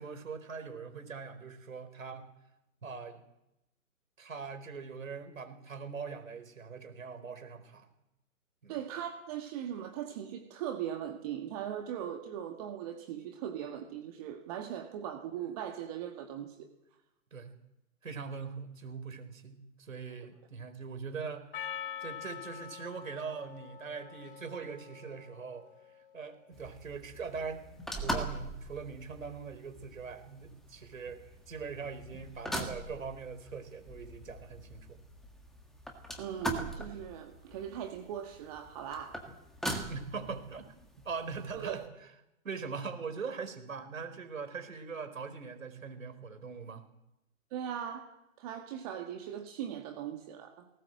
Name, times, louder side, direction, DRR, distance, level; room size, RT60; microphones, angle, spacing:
voice 1, 0.0-2.3 2.8-3.2 4.2-7.9 8.6-8.8 17.3-17.5 18.0-21.4 22.0-25.7 26.1-27.6 27.9-31.2 31.5-35.0 39.7-40.7 41.0-41.8 42.4-46.8, right 5 dB, 65° right, 8 dB, 4.4 m, -42 dB
voice 2, 8.7-16.7 36.2-39.2 41.5-41.8 47.5-48.1 48.4-50.7, right 9 dB, 25° right, 4 dB, 1.8 m, -39 dB
Percussion, 21.5-26.1, left 9 dB, 40° left, 1.2 m, -45 dB
sound 1, 26.5-41.9, right 1 dB, ahead, 1.6 m, -42 dB
19.0 x 18.5 x 7.7 m, 0.89 s
figure-of-eight pair, 135°, 42 cm